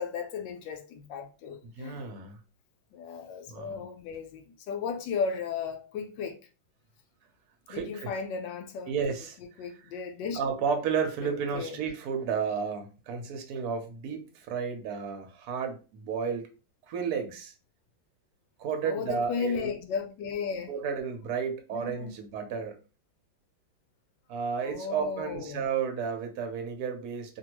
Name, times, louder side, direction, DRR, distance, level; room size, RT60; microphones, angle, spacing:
voice 1, 0.0-2.1 2.9-6.4 7.7-9.2 9.6-10.4 11.2-11.8 18.8-20.7 21.7-22.1 24.6-25.6, left 6 dB, 75° left, 1.2 m, -35 dB
voice 2, 1.8-2.4 3.5-3.8 7.7-8.1 8.9-9.4 10.3-16.4 16.9-17.5 18.6-19.7 20.7-22.8 24.3-27.4, right 6 dB, 65° right, 1.1 m, -32 dB
2.8 x 2.7 x 3.0 m
omnidirectional pair, 2.2 m